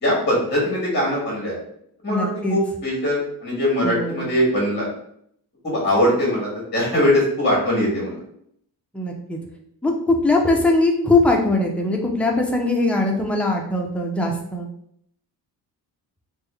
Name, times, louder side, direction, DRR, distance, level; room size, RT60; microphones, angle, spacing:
voice 1, 0.0-1.6 2.0-4.9 5.6-8.2, left 1 dB, 25° left, -4 dB, 1.4 m, -21 dB
voice 2, 2.1-2.6 3.8-4.2 8.9-9.4 9.8-14.7, left 2 dB, 5° left, 1 dB, 0.4 m, -21 dB
3.5 x 2.2 x 3.2 m, 0.70 s
cardioid pair, 125°, 40 cm